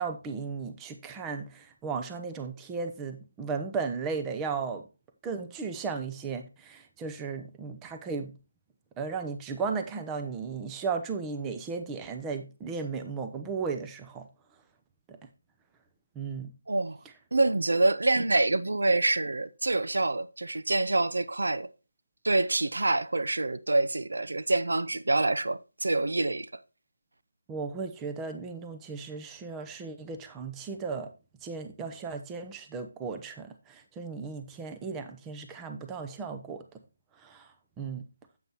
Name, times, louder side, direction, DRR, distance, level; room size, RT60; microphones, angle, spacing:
voice 1, 0.0-4.9 5.2-8.3 9.0-14.3 15.1-15.2 16.1-16.5 27.5-31.1 31.4-36.6 37.2-37.5 37.8-38.0, right 5 dB, 10° right, 0.7 m, -35 dB
voice 2, 16.7-17.0 17.3-21.7 22.2-26.5, right 2 dB, 75° right, 0.7 m, -26 dB
9.1 x 8.0 x 2.9 m
figure-of-eight pair, 165°, 0 cm